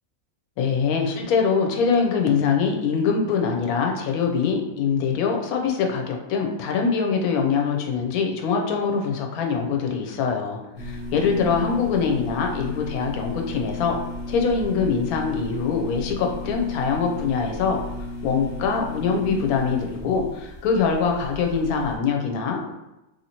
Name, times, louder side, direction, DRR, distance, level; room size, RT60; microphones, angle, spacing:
voice 1, 0.6-14.0 14.3-17.8 18.2-22.7, left 5 dB, 85° left, 2 dB, 1.1 m, -23 dB
sound 1, 10.8-22.0, left 1 dB, 35° left, 1.1 m, -34 dB
3.1 x 2.8 x 2.8 m, 0.94 s
omnidirectional pair, 1.5 m